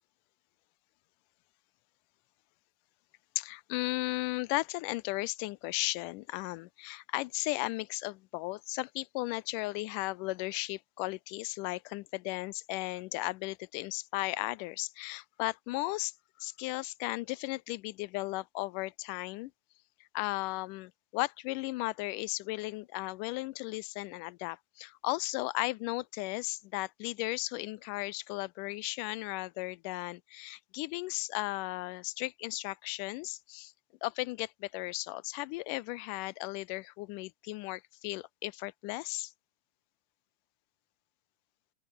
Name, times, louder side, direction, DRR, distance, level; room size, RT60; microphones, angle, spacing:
voice 1, 3.4-16.1 16.4-19.5 20.1-33.7 34.0-39.3, left 21 dB, 90° left, 2.2 m, -35 dB
open air
omnidirectional pair, 3.6 m